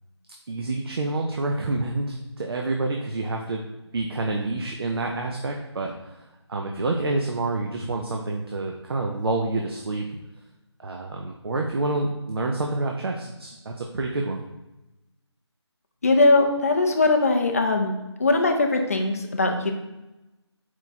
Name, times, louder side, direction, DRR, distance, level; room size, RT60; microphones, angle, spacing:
voice 1, 0.5-3.7 3.9-6.2 6.5-10.1 10.8-14.4, right 2 dB, 60° right, 1 dB, 0.5 m, -28 dB
voice 2, 16.0-17.9 18.2-19.7, left 2 dB, 30° left, 4 dB, 0.4 m, -20 dB
4.5 x 2.3 x 4.0 m, 1.0 s
figure-of-eight pair, 160°, 15 cm